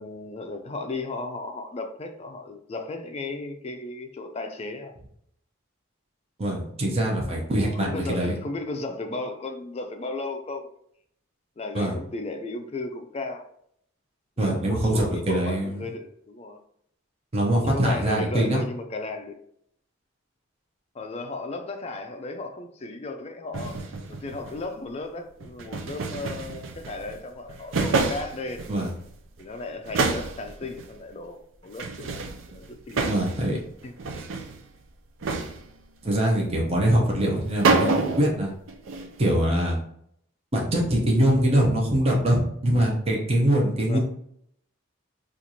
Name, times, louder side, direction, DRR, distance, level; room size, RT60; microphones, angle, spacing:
voice 1, 0.0-4.9 7.5-10.7 11.6-13.5 14.4-16.6 17.6-19.3 20.9-23.8 24.1-28.7 29.4-32.2 32.5-33.2 33.8-33.9 34.3-34.4 37.7-38.4 43.9-44.0, left 2 dB, 30° left, 5 dB, 0.4 m, -35 dB
voice 2, 6.4-8.4 11.7-11.9 14.4-15.8 17.3-18.6 28.7-28.9 33.1-33.6 36.0-37.9 38.2-38.5 39.2-39.8 40.5-44.0, right 1 dB, 30° right, -2 dB, 0.7 m, -23 dB
sound 1, 23.5-24.7 25.4-27.2 27.5-29.1 29.4-29.5 29.9-30.9 31.8-33.6 33.8-34.6 35.2-35.8 37.3-37.4 37.6-38.4 38.7-39.3, right 4 dB, 70° right, 0.4 m, -28 dB
4.3 x 2.5 x 2.7 m, 0.70 s
head